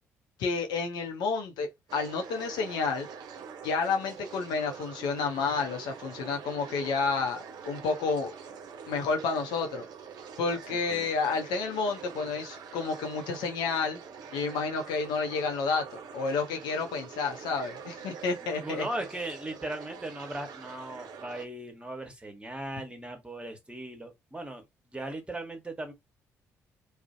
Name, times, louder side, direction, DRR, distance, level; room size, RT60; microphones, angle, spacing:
voice 1, 0.4-3.1 3.6-8.3 8.9-9.8 10.4-14.0 14.3-18.9, left 4 dB, 70° left, 0.5 m, -30 dB
sound 1, 1.9-21.4, right 6 dB, 60° right, 0.5 m, -45 dB
voice 2, 18.6-24.6 24.9-25.9, right 1 dB, 15° right, 1.0 m, -38 dB
2.4 x 2.0 x 2.5 m
hypercardioid pair, 50°, 8 cm